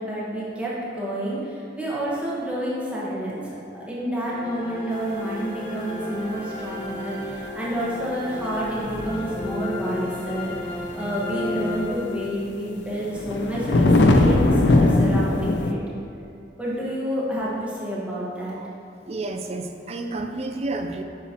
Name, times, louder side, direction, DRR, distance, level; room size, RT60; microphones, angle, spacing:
voice 1, 0.0-3.4 3.7-15.8 16.6-18.6, equal, 5° right, -7 dB, 1.2 m, -29 dB
sound 1, 4.3-12.6, left 2 dB, 30° left, 1.5 m, -33 dB
sound 2, 8.8-9.9 10.4-10.7 11.7-11.8 12.9-15.7, left 2 dB, 70° left, 0.5 m, -19 dB
voice 2, 19.1-21.0, right 2 dB, 35° right, 5 dB, 0.4 m, -30 dB
8.5 x 5.8 x 2.9 m, 2.5 s
head